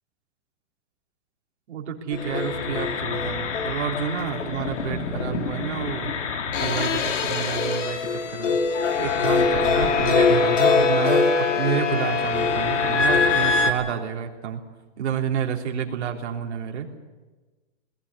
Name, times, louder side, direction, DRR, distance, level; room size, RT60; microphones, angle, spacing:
voice 1, 1.7-6.1 6.6-8.6 9.0-14.6 15.0-16.9, right 7 dB, 60° right, 1 dB, 3.7 m, -29 dB
sound 1, 2.1-13.7, left 5 dB, 75° left, 2.8 m, -23 dB
21.0 x 16.5 x 9.9 m, 1.2 s
supercardioid pair, 170°, 37 cm